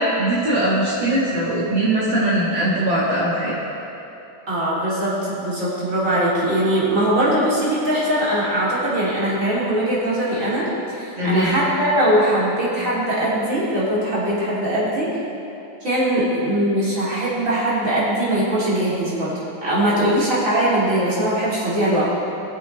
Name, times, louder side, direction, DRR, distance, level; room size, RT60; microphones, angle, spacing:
voice 1, 0.2-3.5 11.2-11.6, right 1 dB, 65° right, -8 dB, 2.5 m, -20 dB
voice 2, 4.5-15.2 15.8-22.1, right 1 dB, 40° right, -8 dB, 3.5 m, -21 dB
22.0 x 7.5 x 3.3 m, 3.0 s
omnidirectional pair, 2.2 m